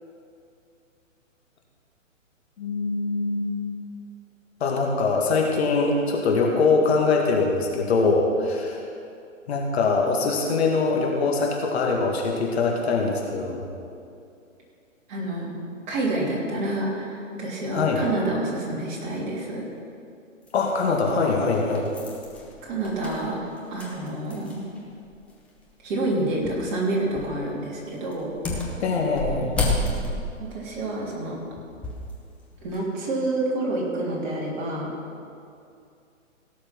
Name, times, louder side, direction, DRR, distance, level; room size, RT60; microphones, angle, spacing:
voice 1, 2.6-3.5 4.6-8.8 9.5-13.7 17.7-18.0 20.5-21.9 28.8-29.5, left 4 dB, 50° left, 0 dB, 2.1 m, -23 dB
voice 2, 15.1-15.6 15.9-19.6 22.6-23.4 23.7-24.7 25.8-28.3 30.4-31.4 32.6-34.9, right 2 dB, 35° right, -4 dB, 3.4 m, -28 dB
sound 1, 20.5-20.6 21.3-24.8 25.1-25.2 26.4-26.7 27.1-27.4 28.1-32.1 32.6-32.8, left 2 dB, 5° left, 0.5 m, -31 dB
17.0 x 6.5 x 6.1 m, 2.5 s
hypercardioid pair, 140°, 40 cm